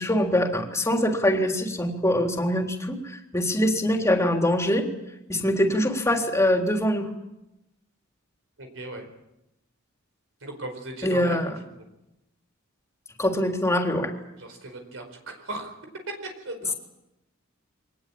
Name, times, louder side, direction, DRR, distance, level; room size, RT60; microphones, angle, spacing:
voice 1, 0.0-4.9 5.3-7.1 11.0-11.5 13.2-14.1, left 1 dB, 15° left, 2 dB, 3.6 m, -23 dB
voice 2, 8.6-9.1 10.4-11.8 14.4-15.7 16.1-16.7, right 2 dB, 70° right, 5 dB, 4.7 m, -37 dB
24.5 x 19.5 x 8.8 m, 0.91 s
head